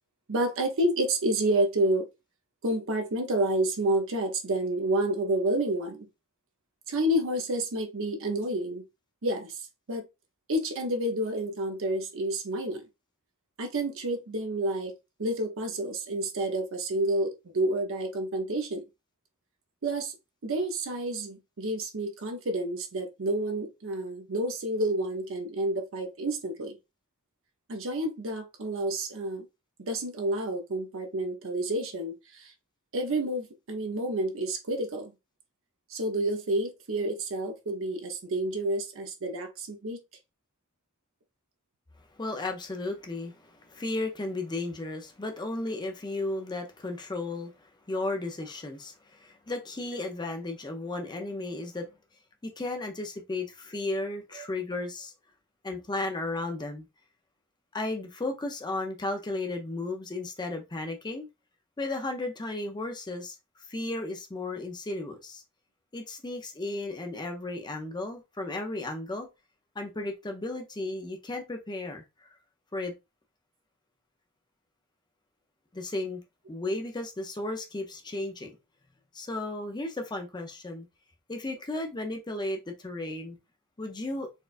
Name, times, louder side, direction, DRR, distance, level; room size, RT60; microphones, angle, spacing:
voice 1, 0.3-2.1 2.6-6.1 6.9-8.8 9.2-9.6 9.9-10.0 10.5-12.8 13.6-14.9 15.2-18.8 19.8-20.1 20.4-26.8 27.7-29.5 29.8-32.5 32.9-35.1 35.9-40.0 54.4-54.5, right 1 dB, 60° right, 0.7 m, -29 dB
voice 2, 42.2-51.9 52.4-55.1 55.6-56.9 57.7-61.3 61.8-63.4 63.7-65.4 65.9-69.3 69.8-72.3 72.7-72.9 75.7-76.2 76.5-78.5 79.1-80.9 81.3-83.4 83.8-84.3, left 2 dB, 20° left, 0.5 m, -34 dB
4.2 x 2.3 x 2.4 m
head